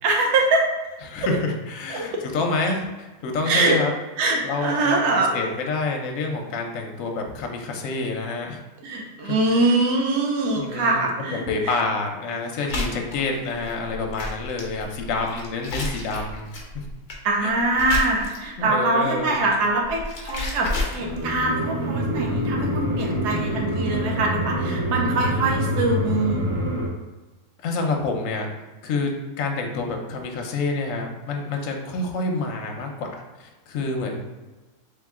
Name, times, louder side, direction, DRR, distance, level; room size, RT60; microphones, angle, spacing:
voice 1, 0.0-0.6 1.9-2.1 3.5-3.8 4.2-5.3 8.8-11.8 17.2-26.4, right 2 dB, 90° right, 0 dB, 1.3 m, -23 dB
voice 2, 1.1-3.9 4.4-8.6 9.2-9.4 10.5-16.9 17.4-17.5 18.6-19.4 27.6-28.5 28.8-34.2, left 3 dB, 65° left, 2 dB, 1.0 m, -28 dB
sound 1, 12.7-18.6 19.7-21.5, left 2 dB, 50° left, 0.6 m, -31 dB
sound 2, 20.9-26.9, equal, 30° right, 0.6 m, -26 dB
3.4 x 3.0 x 3.6 m, 1.2 s
omnidirectional pair, 1.7 m